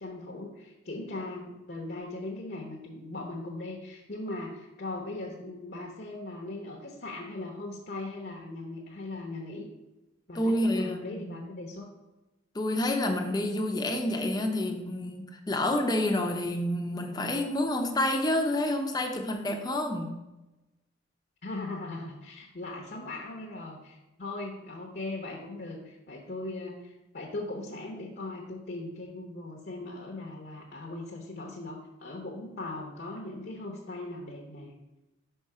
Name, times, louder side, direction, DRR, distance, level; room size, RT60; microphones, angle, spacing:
voice 1, 0.0-9.7 10.3-11.9 21.4-34.7, left 2 dB, 50° left, 0 dB, 0.9 m, -39 dB
voice 2, 10.3-11.3 12.5-20.1, left 1 dB, 20° left, 3 dB, 0.7 m, -28 dB
5.5 x 4.9 x 4.9 m, 1.0 s
head